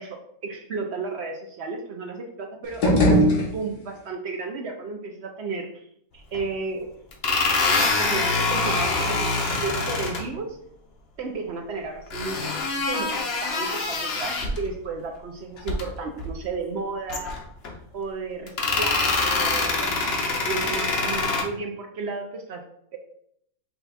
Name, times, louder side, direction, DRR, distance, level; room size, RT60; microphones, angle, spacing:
voice 1, 0.0-5.9 6.1-6.9 7.7-10.6 11.2-17.4 17.9-22.6, right 4 dB, 65° right, 3 dB, 0.6 m, -33 dB
sound 1, 2.6-4.1, equal, 85° left, 1.8 m, -21 dB
sound 2, 6.3-6.4 7.1-10.2 12.1-14.7 15.6-15.8 16.2-16.3 17.1-17.7 18.5-21.4, left 3 dB, 50° left, 0.8 m, -25 dB
5.6 x 2.3 x 4.0 m, 0.72 s
omnidirectional pair, 1.6 m